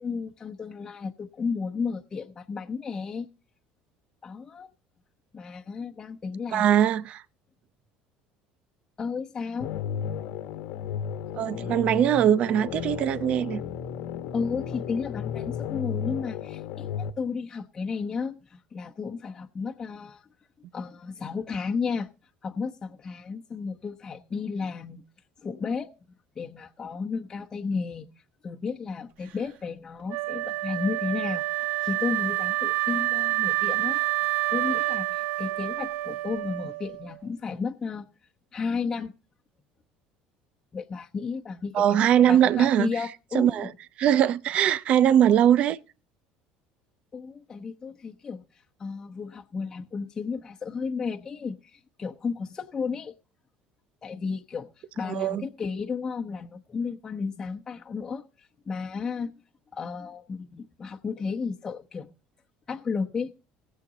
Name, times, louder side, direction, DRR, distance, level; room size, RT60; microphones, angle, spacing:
voice 1, 0.0-3.3 4.2-4.7 5.3-6.6 9.0-9.7 14.3-20.2 20.7-22.1 22.4-25.0 25.4-25.9 26.4-28.1 28.4-31.4 31.8-34.1 34.5-38.1 38.5-39.1 40.7-41.8 42.3-43.7 47.1-48.4 48.8-53.1 54.0-59.3 59.7-62.1 62.7-63.3, left 5 dB, 25° left, 1.0 m, -33 dB
voice 2, 6.5-7.2 11.3-13.6 41.7-42.9 43.3-43.7 44.0-45.8 55.1-55.4, right 10 dB, 50° right, 0.7 m, -21 dB
sound 1, 9.6-17.1, left 8 dB, 75° left, 1.2 m, -34 dB
Wind instrument woodwind instrument, 30.1-37.1, right 18 dB, 65° right, 1.0 m, -28 dB
18.5 x 7.6 x 3.9 m
cardioid pair, 130°, 3 cm